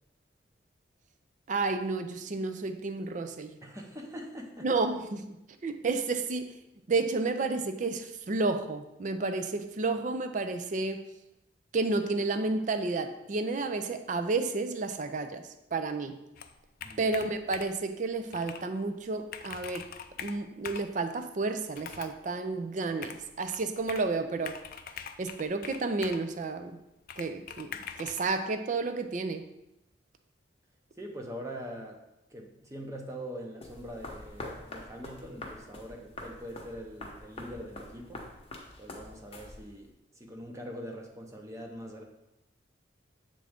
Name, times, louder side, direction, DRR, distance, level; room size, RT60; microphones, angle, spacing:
voice 1, 1.5-3.6 4.6-5.4 5.6-6.6 6.9-11.0 11.7-16.2 17.0-19.9 20.2-24.6 25.2-26.8 27.2-29.4, right 3 dB, 45° right, 8 dB, 0.4 m, -31 dB
voice 2, 3.6-4.7 16.8-17.1 31.0-32.0 32.3-38.2 38.8-39.9 40.2-42.0, equal, 15° right, 1 dB, 0.7 m, -43 dB
Computer keyboard, 16.4-17.9 18.3-18.7 19.0-19.1 19.3-20.9 21.7-22.2 23.0-24.1 24.5-26.3 27.1-28.3, left 8 dB, 50° left, 0.4 m, -43 dB
sound 1, 33.6-39.9, left 2 dB, 35° left, 0.8 m, -45 dB
7.5 x 3.7 x 3.5 m, 0.88 s
head